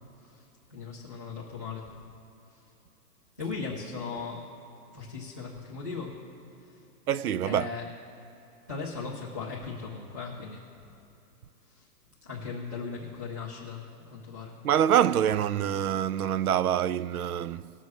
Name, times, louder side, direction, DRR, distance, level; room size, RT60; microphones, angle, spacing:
voice 1, 0.7-1.9 2.5-2.6 3.4-4.4 4.9-6.1 6.6-6.8 7.4-7.9 8.7-10.6 11.7-11.9 12.2-14.6, left 4 dB, 10° left, 0.5 m, -38 dB
voice 2, 7.1-7.7 14.6-17.7, right 10 dB, 65° right, 0.5 m, -25 dB
20.5 x 7.0 x 3.1 m
hypercardioid pair, 180°, 47 cm